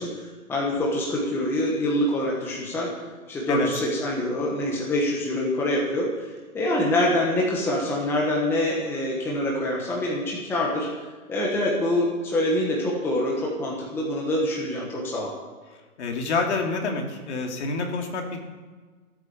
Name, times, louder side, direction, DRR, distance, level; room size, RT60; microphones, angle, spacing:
voice 1, 0.0-2.9 3.3-6.3 6.5-10.9 11.3-15.3, left 1 dB, 5° left, -3 dB, 1.3 m, -25 dB
voice 2, 16.0-18.5, left 3 dB, 50° left, 2 dB, 3.0 m, -27 dB
16.0 x 8.7 x 7.0 m, 1.4 s
hypercardioid pair, 160°, 43 cm